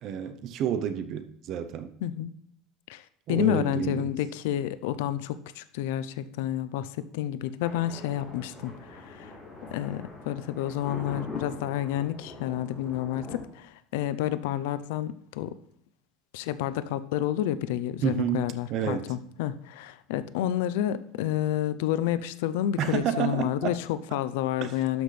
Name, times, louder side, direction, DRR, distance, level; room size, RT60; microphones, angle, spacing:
voice 1, 0.0-1.9 3.3-4.1 18.0-19.1 22.8-23.8 24.6-24.7, right 9 dB, 40° right, 10 dB, 0.6 m, -30 dB
voice 2, 2.0-2.3 2.9-3.0 3.3-6.9 7.1-9.3 9.7-15.5 16.3-25.0, left 12 dB, 80° left, 14 dB, 0.5 m, -30 dB
Thunder, 7.6-13.4, left 3 dB, 5° left, 3.7 m, -42 dB
12.0 x 6.0 x 3.3 m, 0.69 s
cardioid pair, 170°, 0 cm